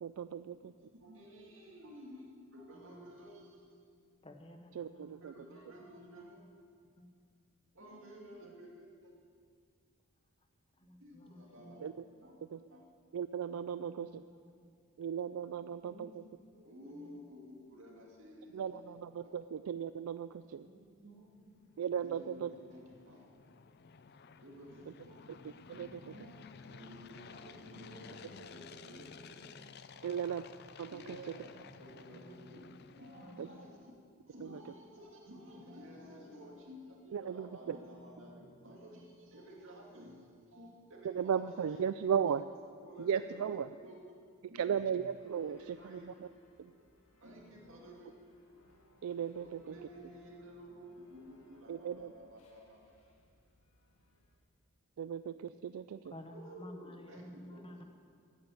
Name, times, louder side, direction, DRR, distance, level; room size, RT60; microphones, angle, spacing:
voice 1, 0.0-0.7 4.8-5.4 11.8-11.9 12.5-12.6 13.1-14.2 15.0-16.2 18.5-20.7 21.8-22.5 24.9-25.0 25.4-26.2 30.0-30.4 30.8-31.4 33.4-33.5 34.4-34.6 37.1-37.8 41.0-42.4 43.0-43.7 44.5-46.3 46.6-46.7 49.0-49.7 51.7-52.1 55.0-56.1, right 8 dB, 75° right, 12 dB, 0.3 m, -36 dB
voice 2, 0.9-3.7 5.2-6.4 7.7-9.1 11.0-11.9 12.2-12.3 12.7-12.8 15.8-16.1 16.5-18.9 19.2-19.5 20.6-21.7 22.0-23.3 24.4-29.7 29.9-30.3 30.9-33.9 34.3-41.8 42.8-43.6 43.8-43.9 44.4-44.9 45.3-46.1 46.6-46.8 47.2-48.1 49.4-53.0 56.3-57.8, equal, 60° right, -1 dB, 2.5 m, -53 dB
voice 3, 4.2-6.1 6.4-6.5 7.0-7.2 8.0-8.1 10.8-11.8 13.7-14.1 14.4-14.7 16.9-17.2 32.1-32.7 33.2-33.6 34.5-34.8 56.1-57.8, left 1 dB, 25° left, 5 dB, 1.0 m, -54 dB
sound 1, 21.6-33.9, left 5 dB, 45° left, 0.4 m, -54 dB
sound 2, 45.1-54.4, left 1 dB, 85° left, 2.0 m, -67 dB
13.5 x 9.2 x 7.9 m, 2.2 s
head